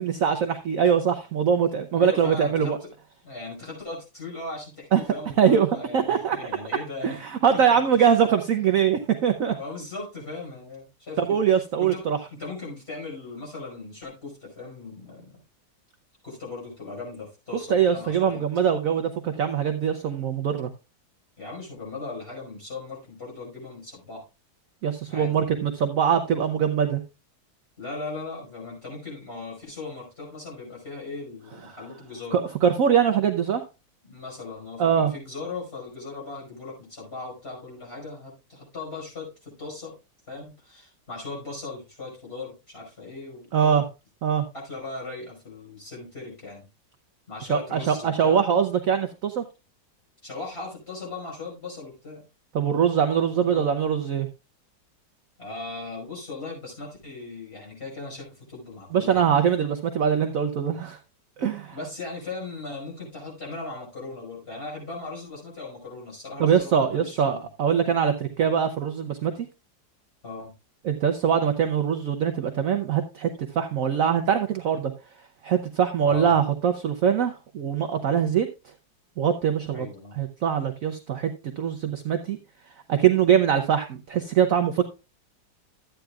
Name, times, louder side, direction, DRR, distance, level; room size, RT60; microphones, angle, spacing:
voice 1, 0.0-2.8 4.9-5.0 5.4-6.4 7.0-9.5 11.2-12.2 17.7-20.7 24.8-27.0 32.3-33.6 34.8-35.1 43.5-43.8 44.2-44.5 47.5-49.4 52.5-54.3 58.9-61.0 61.4-61.8 66.4-69.5 70.8-74.9 75.4-78.5 79.2-79.9 80.2-82.4 82.9-84.8, right 8 dB, 60° right, 7 dB, 0.9 m, -23 dB
voice 2, 2.0-2.9 3.2-7.2 7.7-8.1 9.4-11.4 11.8-12.0 12.3-15.4 16.2-18.4 21.4-24.2 25.1-25.6 27.8-32.4 34.0-40.0 40.3-43.8 44.5-46.7 47.3-48.4 50.2-52.3 53.3-53.7 55.4-59.3 61.7-67.5 70.2-70.5 76.0-76.3 79.7-80.2, left 3 dB, 30° left, -3 dB, 5.4 m, -38 dB
12.5 x 9.1 x 2.4 m, 0.28 s
omnidirectional pair, 2.0 m